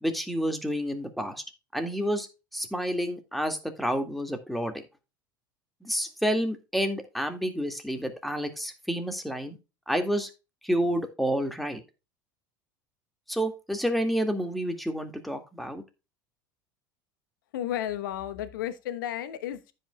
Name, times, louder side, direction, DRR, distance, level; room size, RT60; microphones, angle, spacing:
voice 1, 0.0-1.4 1.7-2.3 2.5-4.8 5.8-9.6 9.9-10.3 10.6-11.8 13.3-15.8, equal, ahead, 2.1 m, -29 dB
voice 2, 17.5-19.7, left 11 dB, 75° left, 1.1 m, -33 dB
14.5 x 5.6 x 2.3 m
hypercardioid pair, 75°, 11 cm